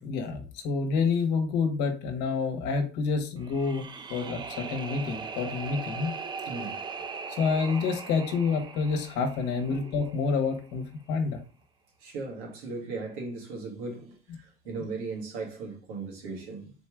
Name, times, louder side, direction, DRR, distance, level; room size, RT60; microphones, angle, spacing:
voice 1, 0.0-6.1 7.3-11.4, left 5 dB, 65° left, 1.2 m, -28 dB
sound 1, 3.4-10.5, right 5 dB, 25° right, 0.5 m, -40 dB
voice 2, 6.4-6.8 9.7-10.0 12.0-16.7, right 3 dB, 90° right, 1.7 m, -37 dB
4.1 x 3.1 x 3.5 m
supercardioid pair, 115°, 19 cm